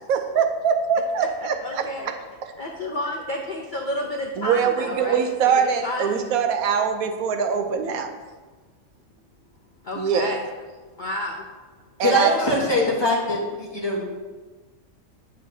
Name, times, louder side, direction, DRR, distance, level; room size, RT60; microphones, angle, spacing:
voice 1, 0.1-2.1 2.4-2.5 4.4-8.1 9.9-10.3 12.0-12.4, right 7 dB, 80° right, 7 dB, 1.1 m, -23 dB
voice 2, 1.2-2.1 2.6-6.2 9.8-10.4 11.0-11.4 12.2-12.8, left 1 dB, 50° left, -1 dB, 0.6 m, -31 dB
voice 3, 12.0-14.0, left 1 dB, 20° left, -3 dB, 1.1 m, -22 dB
9.1 x 6.3 x 2.7 m, 1.3 s
omnidirectional pair, 1.5 m